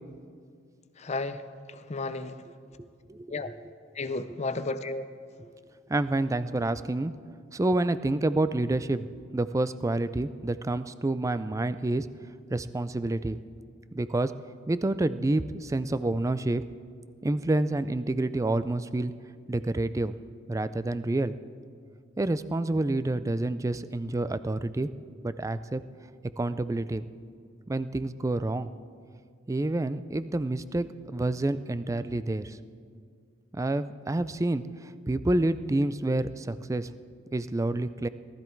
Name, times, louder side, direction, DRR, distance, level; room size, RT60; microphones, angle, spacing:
voice 1, 1.0-1.4 1.9-2.4 3.3-3.5 4.0-5.0, left 3 dB, 35° left, 11 dB, 0.6 m, -32 dB
voice 2, 3.1-3.7 5.4-5.5 5.9-7.1 7.5-9.1 9.3-12.1 12.5-13.4 13.9-14.3 14.7-16.6 17.2-19.1 19.5-20.2 20.5-21.3 22.2-24.9 25.2-25.8 26.4-27.0 27.7-28.7 29.5-32.6 33.5-36.9 37.3-38.1, right 2 dB, 15° right, 13 dB, 0.4 m, -28 dB
18.5 x 13.0 x 4.5 m, 2.2 s
head